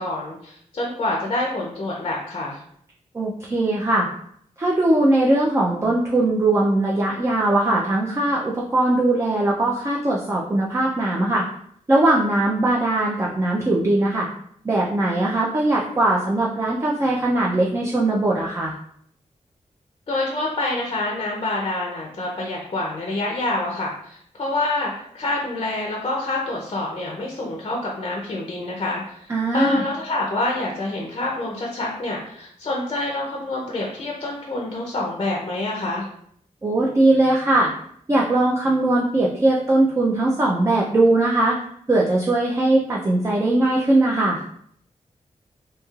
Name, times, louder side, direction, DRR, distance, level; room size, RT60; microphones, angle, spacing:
voice 1, 0.0-2.6 20.1-36.1, left 2 dB, 40° left, -1 dB, 0.5 m, -27 dB
voice 2, 3.1-4.1 4.6-11.4 11.9-14.3 14.6-18.7 29.3-29.8 36.6-37.7 38.1-41.6 41.9-44.4, right 2 dB, 20° right, -3 dB, 0.4 m, -20 dB
3.0 x 2.8 x 2.3 m, 0.67 s
wide cardioid pair, 120°, 13 cm